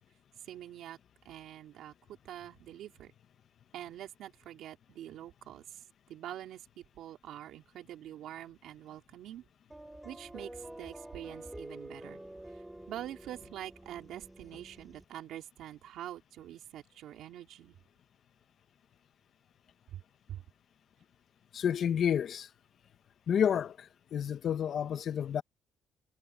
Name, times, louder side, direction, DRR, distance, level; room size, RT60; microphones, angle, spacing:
voice 1, 0.4-1.0 1.2-1.9 2.2-3.1 3.7-5.8 6.1-6.7 7.0-9.4 10.0-12.2 12.5-17.7 19.9-20.0 20.3-20.4, right 12 dB, 80° right, 3.7 m, -45 dB
sound 1, 9.7-15.0, right 1 dB, 10° right, 3.9 m, -48 dB
voice 2, 21.5-22.5 23.3-25.4, left 8 dB, 65° left, 1.2 m, -30 dB
cardioid pair, 90°, 0 cm